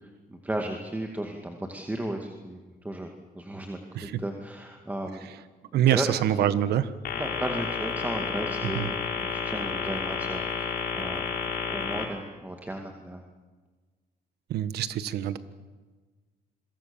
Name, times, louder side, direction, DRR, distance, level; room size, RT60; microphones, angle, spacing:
voice 1, 0.0-3.1 3.3-5.3 5.7-6.6 7.1-11.3 11.7-13.2, right 1 dB, 10° right, 3 dB, 2.3 m, -35 dB
voice 2, 5.7-6.9 8.7-8.9 14.5-15.4, right 11 dB, 75° right, 13 dB, 1.5 m, -25 dB
sound 1, 7.0-12.0, left 6 dB, 65° left, 4.7 m, -31 dB
27.0 x 23.0 x 7.2 m, 1.4 s
cardioid pair, 110°, 17 cm